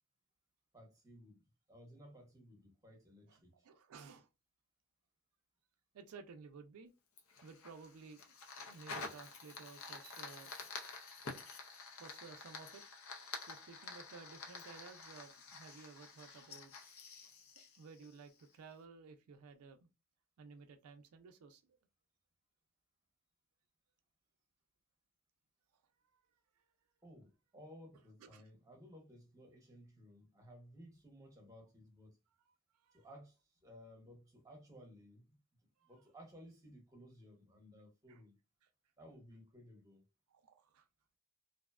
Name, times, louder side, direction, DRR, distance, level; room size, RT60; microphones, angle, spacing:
voice 1, 0.7-3.7 27.0-32.2 32.9-35.4 35.9-38.4 39.0-40.0, equal, 15° right, 0.8 m, -58 dB
voice 2, 3.6-4.3 5.9-6.9 7.4-8.2 8.7-10.5 12.0-12.8 13.4-16.7 17.8-19.9 20.4-21.8 28.2-28.5 32.8-33.1 35.8-35.9 38.1-38.2 40.3-40.8, right 5 dB, 80° right, 0.4 m, -55 dB
Fire, 7.2-18.5, left 4 dB, 65° left, 0.6 m, -49 dB
2.6 x 2.1 x 2.3 m
head